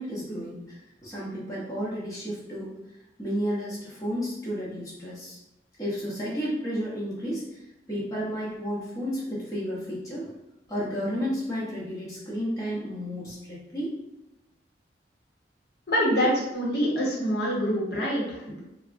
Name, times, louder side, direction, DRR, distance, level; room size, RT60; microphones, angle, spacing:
voice 1, 0.0-2.7 3.2-5.4 5.8-10.3 10.7-13.9 16.2-16.3, equal, 20° left, -7 dB, 0.7 m, -32 dB
voice 2, 15.9-18.6, equal, 60° left, -4 dB, 0.8 m, -25 dB
3.5 x 2.0 x 2.4 m, 0.91 s
head